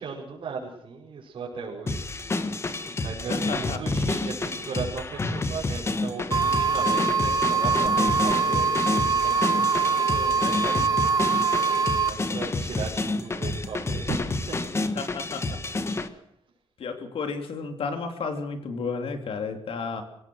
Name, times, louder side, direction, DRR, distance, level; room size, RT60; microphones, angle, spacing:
voice 1, 0.0-2.1 3.0-14.7, right 4 dB, 65° right, -6 dB, 5.7 m, -37 dB
sound 1, 1.9-16.1, left 2 dB, 25° left, 1.4 m, -29 dB
voice 2, 3.3-3.8 14.9-15.6 16.8-20.0, left 4 dB, 70° left, 6 dB, 3.3 m, -32 dB
sound 2, 6.3-12.1, right 5 dB, 40° right, 1.7 m, -23 dB
25.0 x 17.5 x 6.4 m, 0.70 s
wide cardioid pair, 170°, 10 cm